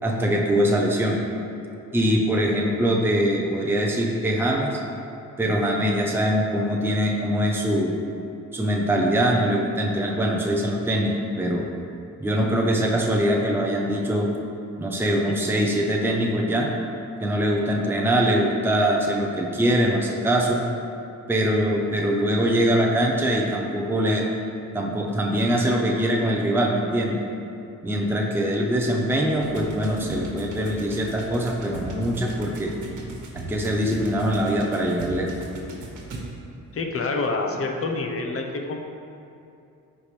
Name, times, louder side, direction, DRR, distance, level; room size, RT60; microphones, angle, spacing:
voice 1, 0.0-1.2 1.9-4.8 5.4-7.9 8.5-11.7 12.2-14.3 14.8-16.7 17.2-20.6 21.3-24.3 24.7-27.2 27.8-32.7 33.3-35.3, equal, 5° right, -1 dB, 0.8 m, -23 dB
sound 1, 29.3-36.6, right 2 dB, 70° right, 1.8 m, -38 dB
voice 2, 36.7-38.8, left 3 dB, 45° left, 3 dB, 1.0 m, -27 dB
14.5 x 4.9 x 3.4 m, 2.6 s
cardioid pair, 125°, 32 cm